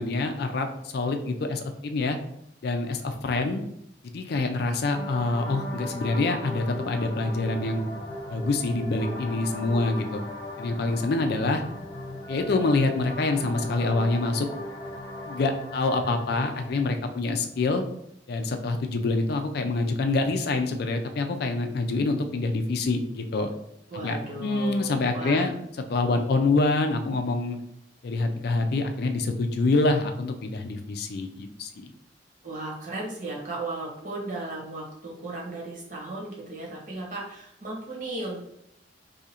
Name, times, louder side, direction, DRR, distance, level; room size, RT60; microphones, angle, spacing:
voice 1, 0.0-2.2 2.6-3.6 4.1-7.9 8.3-10.2 10.6-11.6 12.3-14.5 15.3-17.8 18.3-23.5 23.9-25.5 25.9-27.6 28.0-31.9, left 3 dB, 55° left, 6 dB, 0.4 m, -26 dB
sound 1, 4.9-16.8, left 1 dB, 25° left, 0.8 m, -38 dB
voice 2, 23.9-25.5 32.4-38.4, right 2 dB, 45° right, -3 dB, 1.1 m, -35 dB
2.8 x 2.5 x 4.2 m, 0.76 s
head